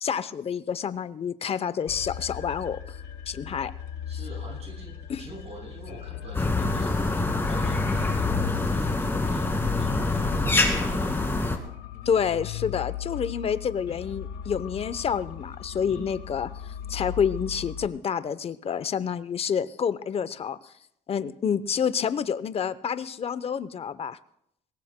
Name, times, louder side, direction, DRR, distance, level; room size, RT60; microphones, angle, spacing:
voice 1, 0.0-3.0 3.3-3.7 5.1-5.3 12.0-20.6 21.1-24.2, left 7 dB, 35° left, 15 dB, 0.7 m, -28 dB
sound 1, 1.9-17.9, left 9 dB, 85° left, 1.8 m, -38 dB
voice 2, 4.1-7.0 7.4-8.3 8.6-11.1 15.7-16.1, right 1 dB, 40° right, -1 dB, 7.3 m, -44 dB
sound 2, 6.3-11.6, left 2 dB, 15° left, 2.1 m, -25 dB
23.0 x 19.0 x 2.2 m, 0.74 s
cardioid pair, 110°, 17 cm